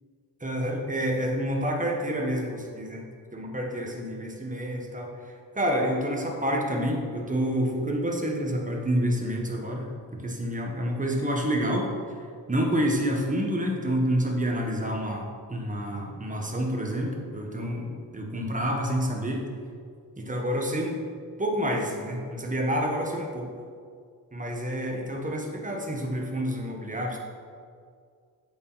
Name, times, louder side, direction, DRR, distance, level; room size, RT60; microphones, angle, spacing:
voice 1, 0.4-3.0 3.3-11.9 12.5-19.4 20.2-20.9 21.4-23.5 24.3-27.2, equal, 20° right, 1 dB, 1.4 m, -28 dB
8.3 x 6.6 x 4.1 m, 2.1 s
cardioid pair, 90°, 41 cm